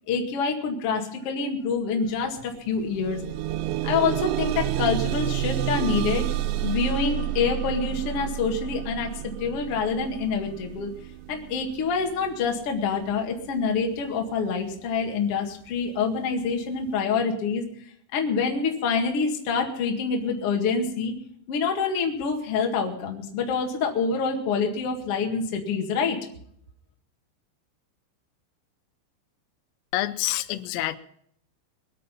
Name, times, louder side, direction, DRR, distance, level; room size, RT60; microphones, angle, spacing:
voice 1, 0.1-3.2 3.8-6.3 6.6-10.9 11.3-17.6 18.1-21.1 21.5-26.2, left 5 dB, 55° left, 2 dB, 1.7 m, -26 dB
sound 1, 2.1-2.2 2.6-13.6 14.4-14.5 15.0-15.1, right 13 dB, 90° right, 2.4 m, -30 dB
voice 2, 29.9-31.0, left 16 dB, 85° left, 12 dB, 3.4 m, -27 dB
22.5 x 8.7 x 5.5 m, 0.66 s
omnidirectional pair, 5.8 m